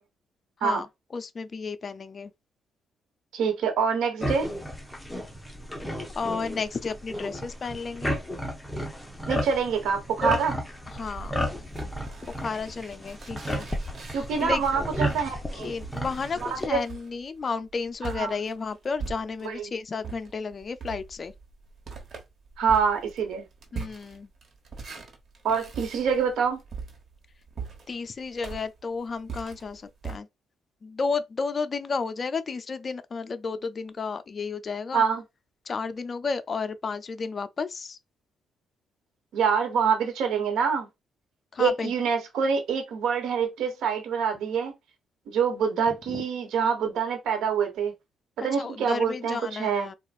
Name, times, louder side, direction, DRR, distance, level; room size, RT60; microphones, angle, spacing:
voice 1, 1.1-2.3 6.1-8.1 10.9-11.3 12.4-13.7 14.1-14.6 15.5-21.3 23.7-24.3 27.9-30.3 30.8-35.0 35.7-38.0 41.5-41.9 45.9-46.2 48.6-50.0, left 4 dB, 40° left, 0.5 m, -32 dB
voice 2, 3.3-4.5 9.3-10.6 14.1-15.7 16.4-16.8 18.1-18.3 19.4-19.7 22.6-23.5 25.4-26.6 34.9-35.2 39.3-40.9 41.6-44.7 45.3-47.9 48.4-49.9, right 6 dB, 80° right, 1.2 m, -26 dB
sound 1, 4.2-16.7, equal, 5° left, 0.9 m, -33 dB
sound 2, 10.9-19.6 20.0-30.2, right 5 dB, 50° right, 1.2 m, -42 dB
4.2 x 2.4 x 2.5 m
cardioid pair, 90°, 0 cm